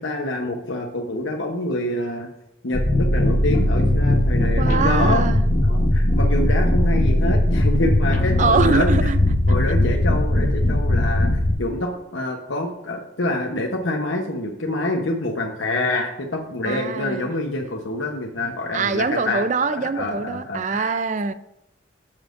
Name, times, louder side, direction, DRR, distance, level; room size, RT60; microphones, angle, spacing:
voice 1, 0.0-2.3 2.6-5.2 5.7-9.1 9.5-11.3 11.6-19.4 19.9-20.9, left 2 dB, 80° left, 1.0 m, -26 dB
sound 1, 2.7-11.5, left 1 dB, 40° left, 1.1 m, -19 dB
voice 2, 4.6-5.4 8.4-9.2 16.7-17.3 18.7-21.3, right 4 dB, 40° right, 0.5 m, -23 dB
12.5 x 7.2 x 2.6 m
head